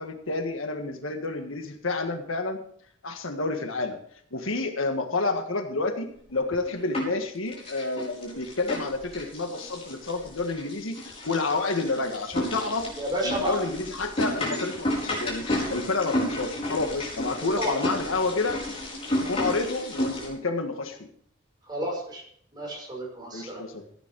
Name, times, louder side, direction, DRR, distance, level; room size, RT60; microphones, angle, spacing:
voice 1, 0.0-2.6 3.0-4.0 4.3-12.9 13.2-18.6 19.2-21.1 23.3-23.8, left 3 dB, 85° left, 6 dB, 1.6 m, -29 dB
sound 1, 6.3-7.2 7.5-20.3, left 1 dB, 30° left, 4.8 m, -32 dB
voice 2, 12.9-13.6 17.6-17.8 21.7-22.2 22.5-23.6, equal, 20° right, -2 dB, 5.6 m, -31 dB
15.0 x 9.4 x 4.7 m, 0.62 s
head